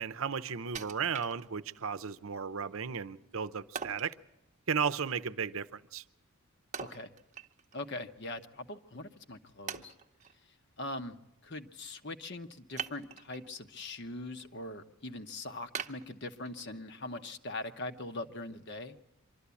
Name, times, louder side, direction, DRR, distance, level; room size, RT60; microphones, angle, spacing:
voice 1, 0.0-4.2 4.7-6.0, right 6 dB, 65° right, 0.7 m, -34 dB
Wood, 0.7-1.9 2.3-2.4 3.7-4.2 6.7-7.8 8.2-8.3 9.0-9.1 9.7-10.3 12.7-13.5 14.0-14.4 14.8-14.9 15.7-16.8 17.2-17.3, right 7 dB, 30° right, 0.8 m, -42 dB
voice 2, 6.8-7.1 7.7-9.9 10.8-19.0, left 2 dB, 50° left, 1.1 m, -42 dB
24.5 x 13.0 x 8.4 m
head